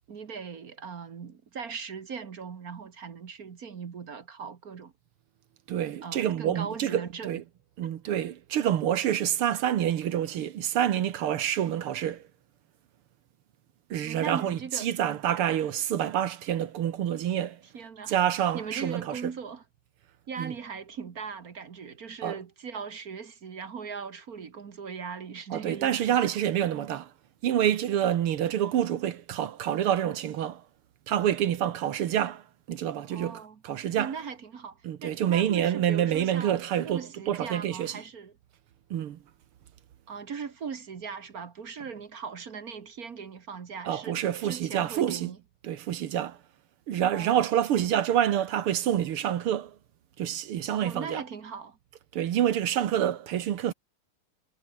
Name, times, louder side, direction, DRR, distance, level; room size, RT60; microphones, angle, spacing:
voice 1, 0.1-4.9 6.0-7.4 7.8-7.9 14.0-14.9 17.7-18.1 18.5-19.6 20.3-26.3 33.1-33.6 34.0-38.3 40.1-45.4 47.1-47.4 50.7-51.8, right 6 dB, 45° right, 1.7 m, -39 dB
voice 2, 5.7-7.4 7.8-12.2 13.9-17.6 18.1-19.2 20.4-20.5 22.2-22.4 25.5-27.1 27.4-30.6 31.1-34.1 34.8-38.0 38.9-39.2 43.9-45.3 45.6-46.4 46.9-49.8 50.2-51.2 52.1-53.7, right 10 dB, 80° right, 2.1 m, -27 dB
omnidirectional pair, 2.4 m